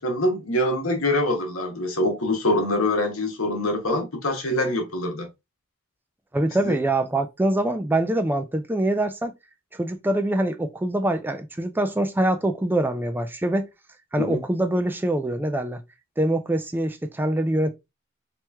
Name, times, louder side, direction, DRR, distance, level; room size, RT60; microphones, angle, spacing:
voice 1, 0.0-5.3 6.6-6.7 14.2-14.4, left 1 dB, 65° left, 1.2 m, -24 dB
voice 2, 6.3-9.3 9.7-13.7 14.1-15.8 16.2-17.7, right 1 dB, 10° right, 0.4 m, -24 dB
3.0 x 3.0 x 3.4 m
head